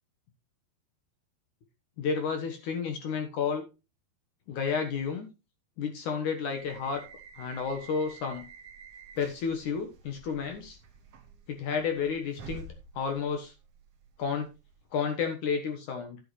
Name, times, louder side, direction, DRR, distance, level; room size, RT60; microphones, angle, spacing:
voice 1, 2.0-3.6 4.5-5.3 5.8-7.0 7.4-8.5 9.2-10.8 11.5-12.6 12.9-13.5 14.2-14.5 14.9-16.2, left 6 dB, 60° left, 5 dB, 2.4 m, -31 dB
sound 1, 6.5-14.9, right 5 dB, 55° right, 1.6 m, -50 dB
12.5 x 8.0 x 3.2 m, 0.27 s
omnidirectional pair, 4.7 m